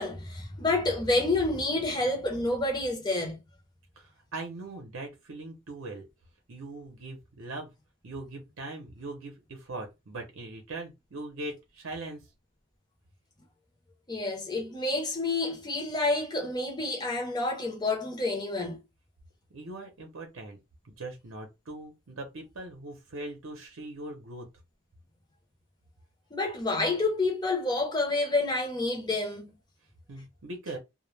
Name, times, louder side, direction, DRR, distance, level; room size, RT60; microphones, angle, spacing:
voice 1, 0.0-3.4 14.1-18.8 26.3-29.5, left 2 dB, 20° left, 0.7 m, -28 dB
voice 2, 4.0-6.1 6.5-7.7 8.0-12.2 19.5-20.6 20.8-24.5 30.1-30.8, right 2 dB, 70° right, 0.6 m, -40 dB
2.2 x 2.1 x 3.1 m
head